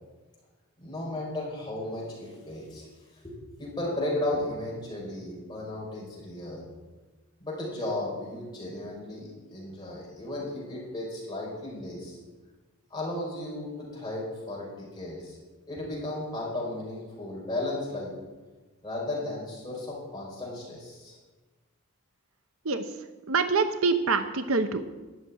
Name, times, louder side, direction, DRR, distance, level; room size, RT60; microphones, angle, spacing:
voice 1, 0.8-2.9 3.2-6.7 7.4-12.2 12.9-15.4 15.7-18.1 18.8-21.2, left 1 dB, 20° left, -4 dB, 5.0 m, -35 dB
voice 2, 23.3-24.8, right 4 dB, 65° right, 9 dB, 0.9 m, -25 dB
12.5 x 7.5 x 9.8 m, 1.2 s
head